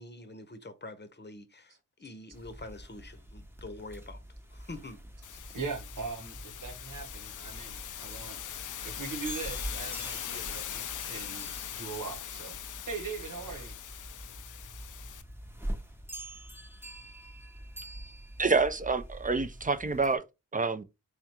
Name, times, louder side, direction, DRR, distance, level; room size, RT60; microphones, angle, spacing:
voice 1, 0.0-4.2 4.5-5.0, left 2 dB, 30° left, 0.8 m, -46 dB
sound 1, 2.3-20.2, right 1 dB, 5° right, 0.8 m, -45 dB
sound 2, 5.2-15.2, left 10 dB, 65° left, 0.5 m, -41 dB
voice 2, 5.5-13.8, right 5 dB, 70° right, 1.1 m, -41 dB
voice 3, 18.4-20.2 20.5-20.8, right 4 dB, 25° right, 0.5 m, -27 dB
3.5 x 3.5 x 2.9 m
cardioid pair, 55°, 33 cm